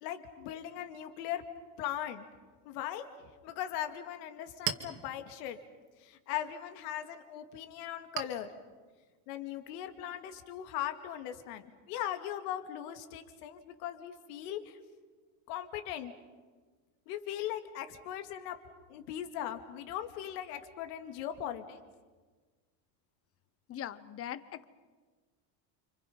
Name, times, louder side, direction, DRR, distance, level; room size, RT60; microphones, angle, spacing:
voice 1, 0.0-1.4 1.8-2.2 2.7-3.1 3.4-5.6 6.0-8.5 9.3-14.8 15.5-16.1 17.1-18.6 18.9-21.8, left 11 dB, 75° left, 7 dB, 2.5 m, -39 dB
Chink clink, 4.1-11.2, right 10 dB, 60° right, 2.3 m, -45 dB
voice 2, 23.7-24.6, left 10 dB, 30° left, 15 dB, 1.0 m, -41 dB
30.0 x 26.5 x 5.6 m, 1.4 s
cardioid pair, 150°, 47 cm